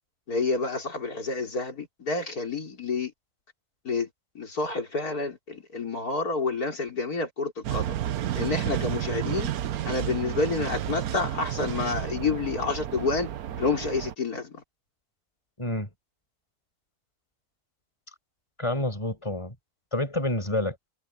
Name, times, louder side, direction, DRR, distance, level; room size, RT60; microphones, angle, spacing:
voice 1, 0.3-3.1 3.8-4.1 4.3-8.0 8.4-9.5 9.8-13.3 13.6-14.6, left 4 dB, 65° left, 4.5 m, -29 dB
sound 1, 7.6-14.1, right 11 dB, 65° right, 1.2 m, -31 dB
voice 2, 15.6-15.9 18.6-19.5 19.9-20.8, left 1 dB, 15° left, 5.9 m, -28 dB
omnidirectional pair, 1.7 m